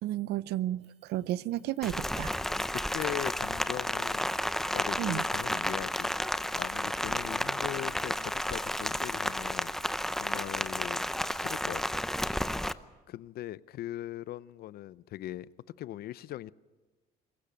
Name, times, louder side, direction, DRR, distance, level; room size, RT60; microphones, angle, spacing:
voice 1, 0.0-2.3 5.0-5.2, right 14 dB, 80° right, 19 dB, 0.6 m, -32 dB
sound 1, 0.7-9.9, right 5 dB, 40° right, 5.2 m, -66 dB
Rain, 1.8-12.7, equal, ahead, 0.6 m, -32 dB
voice 2, 2.4-4.3 4.7-6.1 6.6-9.7 10.1-11.0 11.4-12.0 13.1-15.5 15.8-16.5, left 13 dB, 65° left, 19 dB, 0.6 m, -40 dB
22.0 x 15.0 x 9.1 m, 1.2 s
cardioid pair, 110°, 17 cm